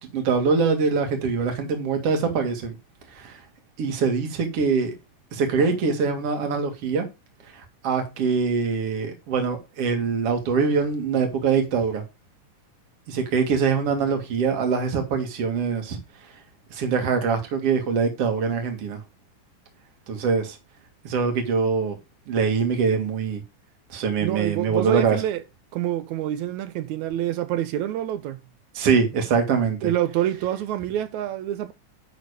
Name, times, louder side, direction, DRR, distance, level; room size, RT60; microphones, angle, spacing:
voice 1, 0.0-2.7 3.1-3.4 3.8-4.9 5.3-7.1 7.5-12.0 13.1-16.0 16.7-19.0 20.1-20.6 21.0-22.0 22.3-23.4 23.9-25.2 28.7-29.9, right 5 dB, 50° right, 2.8 m, -23 dB
voice 2, 24.2-25.4 25.7-28.4 29.8-31.7, right 12 dB, 80° right, 1.9 m, -27 dB
11.0 x 3.9 x 5.0 m
omnidirectional pair, 3.7 m